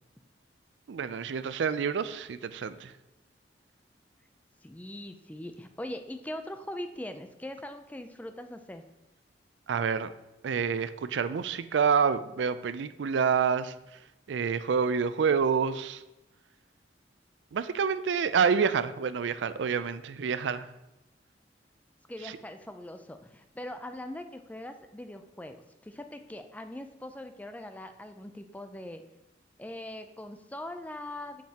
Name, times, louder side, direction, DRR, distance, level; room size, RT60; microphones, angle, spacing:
voice 1, 0.9-2.9 9.7-10.1 10.4-13.7 14.3-16.0 17.5-20.7 22.2-22.3, right 6 dB, 85° right, 13 dB, 0.4 m, -28 dB
voice 2, 4.6-8.8 22.1-29.0 29.6-31.4, left 1 dB, 10° left, 8 dB, 0.4 m, -41 dB
7.5 x 7.3 x 2.9 m, 0.94 s
head